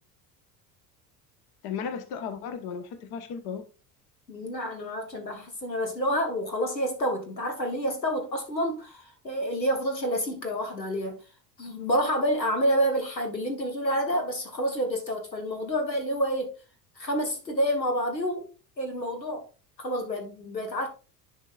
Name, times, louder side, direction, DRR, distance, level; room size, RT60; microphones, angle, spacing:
voice 1, 1.6-3.6, left 6 dB, 50° left, 1.2 m, -35 dB
voice 2, 4.3-11.2 11.6-16.5 17.0-18.5 18.8-19.4 19.8-20.9, equal, 90° left, 1.3 m, -28 dB
10.5 x 5.1 x 2.4 m
figure-of-eight pair, 65°, 49 cm